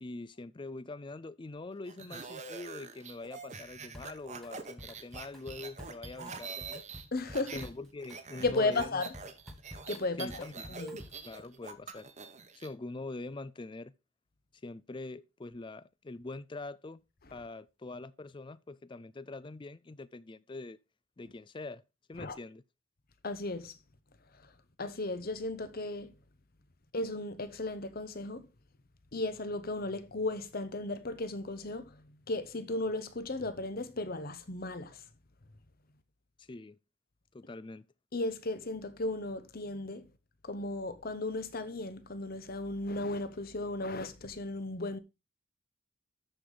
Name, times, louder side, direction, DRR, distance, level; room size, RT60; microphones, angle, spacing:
voice 1, 0.0-6.9 7.5-9.0 10.2-10.8 11.2-12.1 12.5-13.9 14.6-17.0 17.3-20.8 21.2-21.8 22.1-22.6 36.4-36.8 37.3-37.9, left 2 dB, 20° left, 0.4 m, -44 dB
sound 1, 1.9-7.7 8.0-12.7, right 4 dB, 35° right, 1.0 m, -45 dB
Drum kit, 3.9-4.5 4.8-11.3, left 1 dB, ahead, 1.3 m, -51 dB
voice 2, 7.1-7.6 8.4-9.1 9.9-10.4 10.7-11.0 22.2-22.3 23.2-23.8 24.4-24.5 24.8-26.1 26.9-28.5 29.1-35.0 38.1-40.1 40.4-45.0, left 2 dB, 45° left, 0.9 m, -35 dB
13.0 x 4.9 x 3.9 m
head